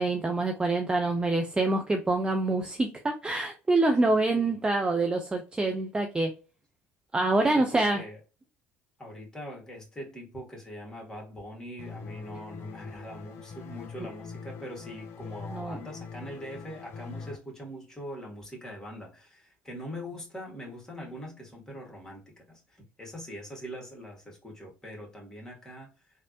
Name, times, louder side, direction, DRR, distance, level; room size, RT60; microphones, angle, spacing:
voice 1, 0.0-6.3 7.1-8.0 15.5-15.8, right 2 dB, 15° right, 0.5 m, -26 dB
voice 2, 4.0-4.6 7.5-8.2 9.0-25.9, equal, 10° left, 1.7 m, -42 dB
sound 1, 11.8-17.4, left 5 dB, 45° left, 0.6 m, -43 dB
3.1 x 2.5 x 2.7 m
figure-of-eight pair, 65°, 6 cm